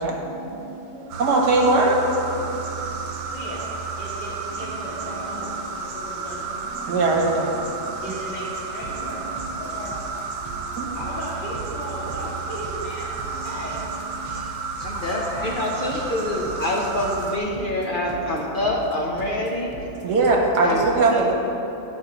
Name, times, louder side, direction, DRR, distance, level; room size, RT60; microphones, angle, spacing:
sound 1, 1.1-17.4, right 4 dB, 90° right, 1.3 m, -32 dB
voice 1, 1.2-2.0 6.9-7.5 10.8-10.9 20.0-21.3, right 3 dB, 70° right, -1 dB, 1.6 m, -19 dB
voice 2, 3.3-3.7 4.0-7.4 8.0-9.3 9.6-10.0 10.9-13.8 14.9-15.5, equal, 80° left, -10 dB, 2.0 m, -36 dB
voice 3, 14.8-19.7 20.6-21.3, left 1 dB, 55° left, -1 dB, 0.6 m, -26 dB
10.5 x 4.2 x 6.0 m, 3.0 s
omnidirectional pair, 1.8 m